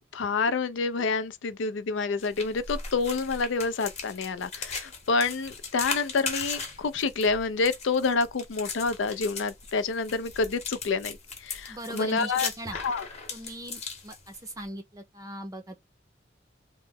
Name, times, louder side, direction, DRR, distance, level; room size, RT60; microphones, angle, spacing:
voice 1, 0.1-13.1, left 4 dB, 80° left, 0.4 m, -28 dB
sound 1, 2.2-14.6, left 4 dB, 35° left, 0.9 m, -38 dB
voice 2, 11.7-12.8 13.3-15.8, right 1 dB, 20° right, 0.5 m, -39 dB
3.1 x 2.1 x 3.4 m
head